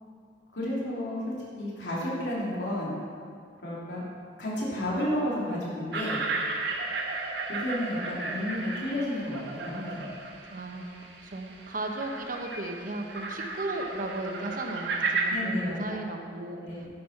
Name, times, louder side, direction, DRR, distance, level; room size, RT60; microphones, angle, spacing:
voice 1, 0.5-2.9 3.6-4.1 4.4-6.2 7.5-10.1 15.3-16.0 16.6-16.8, left 1 dB, 80° left, -6 dB, 3.2 m, -32 dB
sound 1, 5.9-15.3, right 3 dB, 75° right, 1.5 m, -34 dB
voice 2, 10.4-10.9 11.2-16.6, right 2 dB, 50° right, 3 dB, 1.1 m, -35 dB
10.5 x 8.3 x 5.7 m, 2.2 s
head